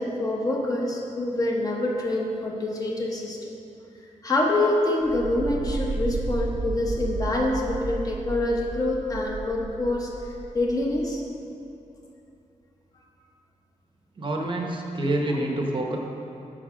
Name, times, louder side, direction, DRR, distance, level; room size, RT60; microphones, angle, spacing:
voice 1, 0.0-3.4 4.2-10.1 10.5-11.2, left 2 dB, 25° left, -2 dB, 1.0 m, -26 dB
sound 1, 5.0-11.1, right 3 dB, 85° right, 1.0 m, -33 dB
voice 2, 14.2-16.0, right 1 dB, 40° right, 0 dB, 0.9 m, -27 dB
8.7 x 5.4 x 6.2 m, 2.8 s
wide cardioid pair, 180°, 13 cm